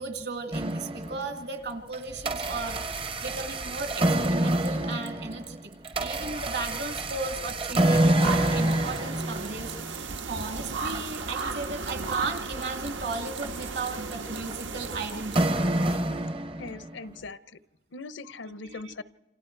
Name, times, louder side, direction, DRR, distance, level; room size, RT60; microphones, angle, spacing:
voice 1, 0.0-5.7 6.0-15.6 18.7-18.9, right 3 dB, 60° right, 6 dB, 2.2 m, -36 dB
sound 1, 0.5-1.5 1.9-17.0, right 1 dB, 30° right, 0.7 m, -27 dB
sound 2, 8.2-15.5, right 4 dB, 80° right, 1.4 m, -35 dB
voice 2, 16.6-17.4 17.9-19.0, left 3 dB, 80° left, 15 dB, 0.7 m, -40 dB
28.0 x 26.5 x 4.6 m, 1.0 s
head